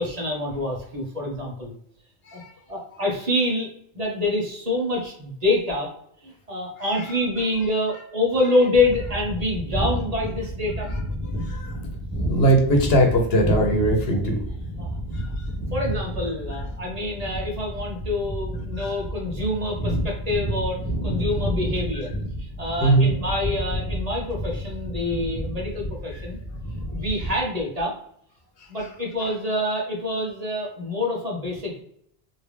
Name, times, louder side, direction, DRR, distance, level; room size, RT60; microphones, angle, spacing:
voice 1, 0.0-1.7 2.3-2.4 2.7-3.7 3.9-5.9 6.2-10.9 14.8-15.0 15.7-22.1 22.4-26.4 26.9-27.9 28.7-31.8, left 2 dB, 40° right, -1 dB, 1.0 m, -26 dB
sound 1, 8.7-27.4, right 1 dB, 5° left, 1.1 m, -30 dB
voice 2, 11.4-11.8 12.3-14.4 15.1-15.5 18.8-18.9 22.8-23.1 26.1-26.2, right 1 dB, 70° left, 3 dB, 1.1 m, -20 dB
3.4 x 2.7 x 3.1 m, 0.68 s
omnidirectional pair, 1.1 m